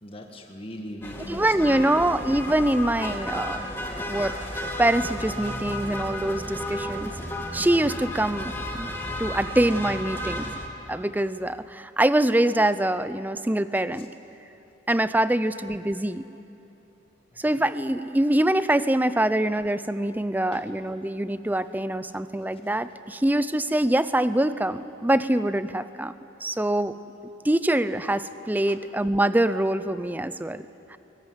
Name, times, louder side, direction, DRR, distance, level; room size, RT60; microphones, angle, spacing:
voice 1, 0.0-2.0 3.5-3.9 9.3-9.5 14.0-14.1 20.5-20.7 28.7-28.8, left 1 dB, 30° left, 2 dB, 1.7 m, -41 dB
sound 1, 1.0-10.7, left 1 dB, 10° left, 2.0 m, -33 dB
voice 2, 1.3-3.7 4.1-7.1 7.5-8.9 9.2-10.5 10.9-14.1 14.9-16.3 17.4-26.1 26.4-27.0 27.4-30.7 30.9-31.0, right 1 dB, 10° right, 14 dB, 0.5 m, -24 dB
22.5 x 19.5 x 9.7 m, 2.9 s
head